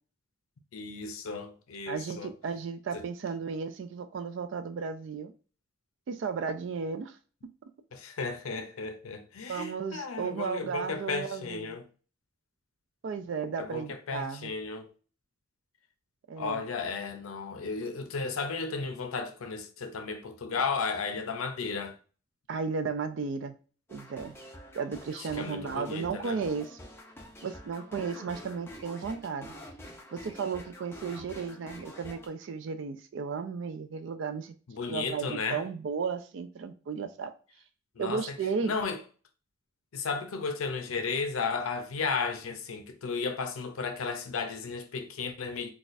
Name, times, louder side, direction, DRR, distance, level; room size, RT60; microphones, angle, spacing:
voice 1, 0.7-2.3 2.9-3.0 7.9-11.8 13.6-14.9 16.4-22.0 25.4-26.4 34.7-35.6 38.0-38.4 38.6-39.0 39.9-45.7, left 4 dB, 85° left, 0.6 m, -34 dB
voice 2, 1.9-5.3 6.1-7.2 9.5-11.8 13.0-14.5 16.3-16.6 22.5-23.5 23.9-24.4 24.7-26.8 27.4-29.5 30.1-34.5 34.9-37.3 38.0-38.7, right 5 dB, 60° right, 0.3 m, -34 dB
sound 1, 23.9-32.3, left 1 dB, 10° left, 0.4 m, -47 dB
4.0 x 2.4 x 2.5 m
head